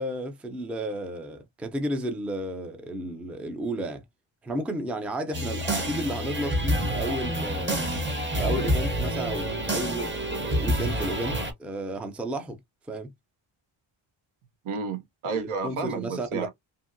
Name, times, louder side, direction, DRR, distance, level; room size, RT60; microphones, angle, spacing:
voice 1, 0.0-4.0 4.4-7.8 8.4-12.6 12.9-13.1 15.3-16.5, right 1 dB, 5° right, 0.3 m, -33 dB
sound 1, 5.3-11.5, equal, 25° right, 0.7 m, -28 dB
voice 2, 14.6-16.5, right 5 dB, 85° right, 0.9 m, -31 dB
2.8 x 2.7 x 2.5 m
wide cardioid pair, 145°, 48 cm